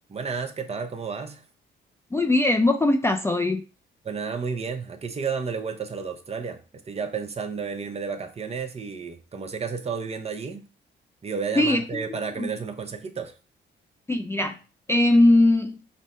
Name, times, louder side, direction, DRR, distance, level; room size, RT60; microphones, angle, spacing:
voice 1, 0.1-1.4 4.0-10.7 11.2-13.3, right 5 dB, 30° right, 0.7 m, -32 dB
voice 2, 2.1-3.6 11.6-12.1 12.4-12.5 14.1-14.6 14.9-15.8, left 2 dB, 15° left, 0.4 m, -20 dB
5.2 x 2.1 x 4.1 m
cardioid pair, 90°, 20 cm